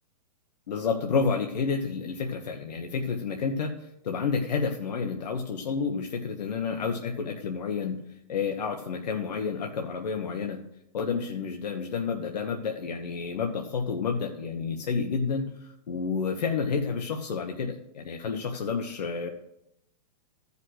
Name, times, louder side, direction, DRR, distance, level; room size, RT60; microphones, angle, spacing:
voice 1, 0.7-8.0 8.3-10.6 10.9-19.3, left 5 dB, 85° left, 4 dB, 1.2 m, -30 dB
14.0 x 5.6 x 6.4 m, 0.81 s
hypercardioid pair, 160°, 21 cm